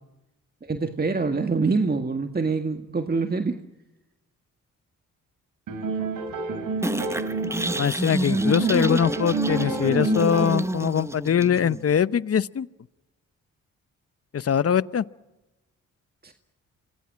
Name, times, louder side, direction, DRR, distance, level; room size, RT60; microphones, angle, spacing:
voice 1, 0.6-3.6 16.2-16.3, right 4 dB, 30° right, 6 dB, 1.9 m, -25 dB
sound 1, 5.7-8.0 8.3-10.8, right 3 dB, 75° right, 3.8 m, -30 dB
sound 2, 6.8-11.8, right 1 dB, 10° right, 0.9 m, -27 dB
voice 2, 7.8-12.7 14.3-15.0, left 8 dB, 45° left, 18 dB, 0.9 m, -22 dB
27.5 x 21.0 x 7.5 m, 0.99 s
supercardioid pair, 55°, 33 cm